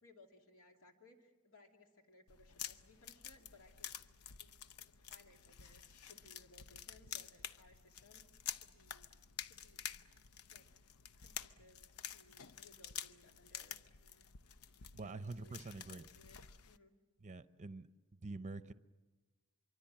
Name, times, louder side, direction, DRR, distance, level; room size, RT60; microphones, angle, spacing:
voice 1, 0.0-3.9 4.4-8.3 8.6-9.1 9.4-9.8 10.5-10.7 11.1-14.3 15.0-15.6 15.9-16.4 16.7-16.9, left 2 dB, 70° left, 3 dB, 2.7 m, -64 dB
sound 1, 2.3-16.8, left 9 dB, 90° left, 0.7 m, -50 dB
voice 2, 14.9-16.0 17.2-17.9 18.1-18.7, right 3 dB, 35° right, 13 dB, 0.7 m, -46 dB
24.5 x 24.5 x 7.5 m, 1.2 s
head